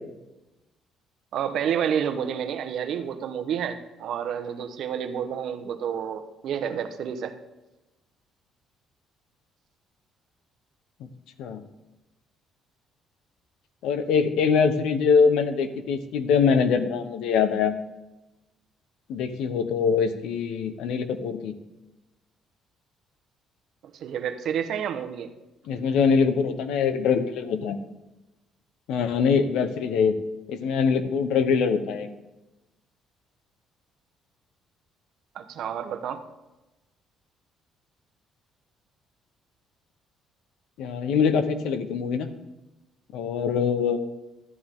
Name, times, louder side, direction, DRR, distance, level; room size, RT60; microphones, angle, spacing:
voice 1, 1.3-7.3 23.8-25.3 35.3-36.2, right 8 dB, 60° right, 9 dB, 1.0 m, -29 dB
voice 2, 13.8-17.7 19.1-21.5 25.7-27.8 28.9-30.2 30.5-32.1 40.8-42.3 43.1-44.0, left 6 dB, 85° left, 10 dB, 1.0 m, -23 dB
12.5 x 11.0 x 3.7 m, 1.0 s
cardioid pair, 150°, 0 cm